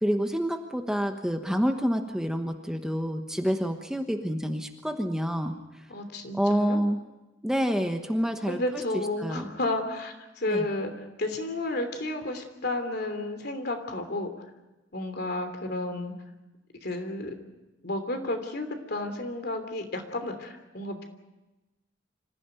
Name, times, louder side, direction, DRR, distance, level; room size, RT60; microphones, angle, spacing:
voice 1, 0.0-5.9 6.3-7.0 7.4-8.6 8.9-9.5 10.5-10.7, equal, 5° right, 5 dB, 1.1 m, -28 dB
voice 2, 5.9-6.8 8.5-14.3 14.9-16.1 16.8-17.3 17.8-21.0, left 2 dB, 60° left, 7 dB, 3.1 m, -32 dB
26.0 x 15.5 x 9.1 m, 1.1 s
head